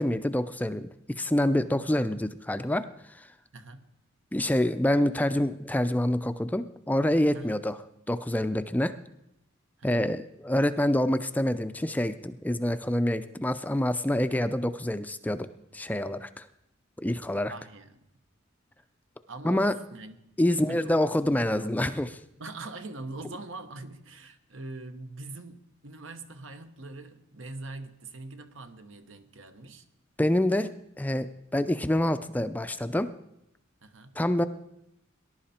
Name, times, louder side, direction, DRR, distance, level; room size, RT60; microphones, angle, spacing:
voice 1, 0.0-3.3 4.3-7.8 8.1-8.9 9.8-15.5 15.7-16.5 17.0-17.5 19.4-19.7 20.4-22.2 30.2-30.7 31.0-31.3 31.5-33.1 34.2-34.4, left 1 dB, 10° left, 0.4 m, -26 dB
voice 2, 3.5-3.9 7.3-7.5 9.8-10.1 17.5-18.0 19.3-21.0 22.4-29.9 33.8-34.2, right 2 dB, 70° right, 1.2 m, -43 dB
19.5 x 11.0 x 4.3 m
head